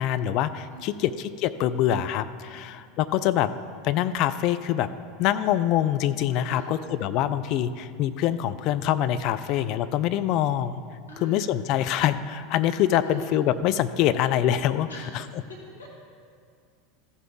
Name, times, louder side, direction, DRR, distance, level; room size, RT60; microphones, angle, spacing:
voice 1, 0.0-3.5 3.8-4.9 5.2-10.8 11.2-14.9 15.1-15.2, left 11 dB, 50° left, 12 dB, 0.4 m, -25 dB
voice 2, 0.7-1.1 2.4-2.6 6.5-6.8 9.4-9.6 11.1-11.5 13.0-13.3 14.9-15.2 15.5-15.9, left 1 dB, 80° left, -2 dB, 1.6 m, -43 dB
15.0 x 5.7 x 3.7 m, 2.2 s
figure-of-eight pair, 80°, 0 cm